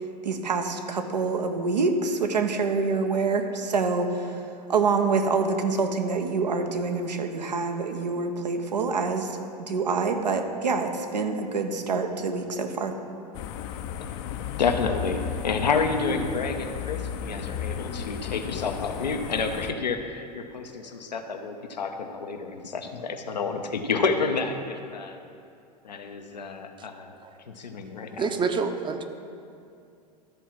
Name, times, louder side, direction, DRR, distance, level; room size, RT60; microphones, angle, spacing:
voice 1, 0.2-4.4 4.7-12.9, right 4 dB, 85° right, 5 dB, 0.9 m, -26 dB
sound 1, 13.3-19.7, left 8 dB, 45° left, 0.6 m, -34 dB
voice 2, 14.6-25.2 25.8-27.1 27.5-28.2, left 4 dB, 85° left, 6 dB, 0.8 m, -29 dB
voice 3, 28.2-29.0, right 5 dB, 20° right, 7 dB, 0.7 m, -28 dB
13.0 x 4.5 x 6.0 m, 2.5 s
figure-of-eight pair, 90°, 21 cm